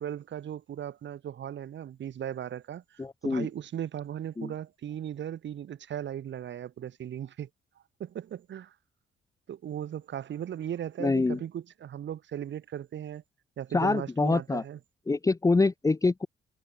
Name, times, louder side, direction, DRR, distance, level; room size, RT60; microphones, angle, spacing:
voice 1, 0.0-7.5 8.0-8.7 9.5-13.2 13.6-14.8, right 10 dB, 65° right, 7.5 m, -37 dB
voice 2, 3.0-3.5 4.4-4.5 11.0-11.4 13.7-14.6 15.1-16.3, left 3 dB, 15° left, 0.9 m, -25 dB
cardioid pair, 90°, 20 cm